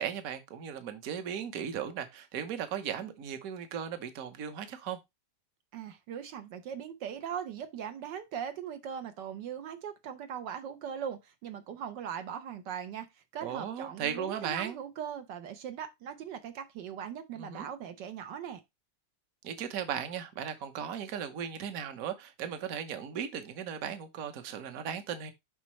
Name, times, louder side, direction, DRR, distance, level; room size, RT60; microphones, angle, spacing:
voice 1, 0.0-5.0 13.4-14.8 17.4-17.7 19.4-25.3, right 8 dB, 55° right, 1.3 m, -37 dB
voice 2, 5.7-13.1 13.3-18.6, right 8 dB, 80° right, 1.5 m, -40 dB
7.3 x 5.3 x 3.1 m
omnidirectional pair, 1.9 m